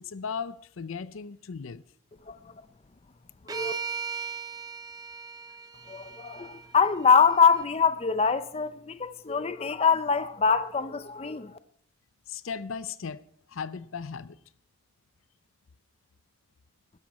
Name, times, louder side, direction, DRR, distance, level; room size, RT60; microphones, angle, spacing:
voice 1, 0.0-1.8 12.3-13.2 13.5-14.4, left 6 dB, 75° left, 0.5 m, -36 dB
sound 1, 3.5-7.7, right 5 dB, 20° right, 0.6 m, -38 dB
voice 2, 5.9-11.5, left 6 dB, 30° left, 0.5 m, -24 dB
13.0 x 12.5 x 4.2 m
head